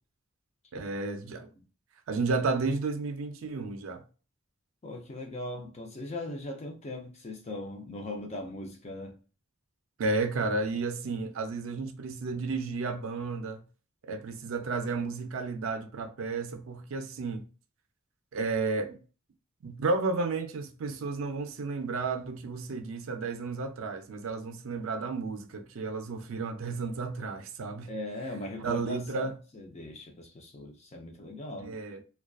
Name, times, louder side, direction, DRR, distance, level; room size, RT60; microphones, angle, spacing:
voice 1, 0.7-1.5 2.1-4.0 10.0-13.6 14.0-17.5 18.3-19.0 19.6-27.9 28.6-29.4 31.6-32.0, right 3 dB, 75° right, 0.4 m, -32 dB
voice 2, 4.8-9.1 27.9-31.8, left 1 dB, 30° left, 0.5 m, -39 dB
2.4 x 2.2 x 2.3 m
head